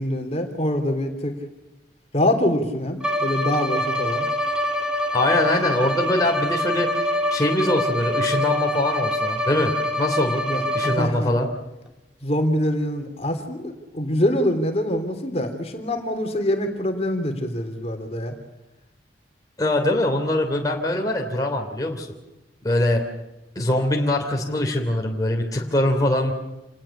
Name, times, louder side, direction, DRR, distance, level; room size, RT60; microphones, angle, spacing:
voice 1, 0.0-1.3 2.1-4.3 10.5-11.3 12.2-18.3, left 1 dB, 35° left, 5 dB, 3.3 m, -24 dB
Bowed string instrument, 3.0-11.3, left 1 dB, 5° right, 2.3 m, -25 dB
voice 2, 5.1-10.4 10.7-11.5 19.6-22.1 22.6-23.0 23.5-26.3, left 1 dB, 20° left, 0 dB, 3.1 m, -23 dB
28.0 x 19.5 x 7.2 m, 0.99 s
head